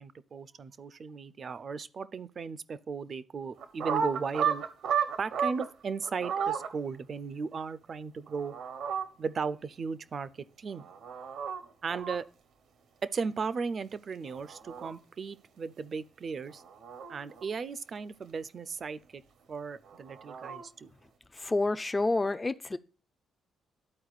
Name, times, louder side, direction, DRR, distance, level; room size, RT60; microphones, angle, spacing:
voice 1, 0.0-4.6 5.2-8.5 9.2-10.3 10.6-10.9 11.8-12.3 13.0-16.6 17.1-19.2 19.5-20.9, right 5 dB, 45° right, 0.4 m, -36 dB
sound 1, 3.6-5.7 6.0-6.7 8.3-9.1 10.7-11.6 11.9-12.2 14.3-14.9 16.5-17.5 19.9-20.7, right 7 dB, 75° right, 0.8 m, -33 dB
voice 2, 21.3-22.8, left 2 dB, 20° left, 0.4 m, -28 dB
12.5 x 4.3 x 2.4 m
cardioid pair, 90°, 0 cm